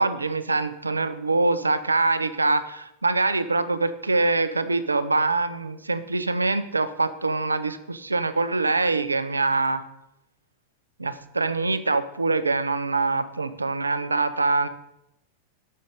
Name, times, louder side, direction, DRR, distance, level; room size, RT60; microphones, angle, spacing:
voice 1, 0.0-9.8 11.0-14.7, right 3 dB, 80° right, 12 dB, 0.4 m, -24 dB
6.4 x 5.1 x 5.5 m, 0.84 s
figure-of-eight pair, 90°, 0 cm